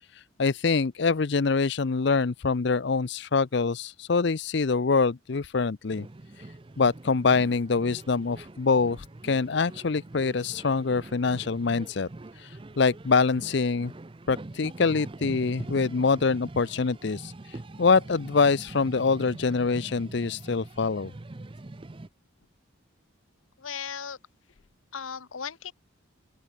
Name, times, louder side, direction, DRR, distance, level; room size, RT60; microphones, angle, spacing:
voice 1, 0.1-6.1 6.8-12.1 12.4-13.9 14.3-21.1, left 4 dB, 55° left, 0.5 m, -25 dB
sound 1, 5.9-22.1, right 2 dB, 25° right, 0.5 m, -44 dB
voice 2, 23.6-24.2 24.9-25.7, left 7 dB, 80° left, 1.0 m, -36 dB
open air
head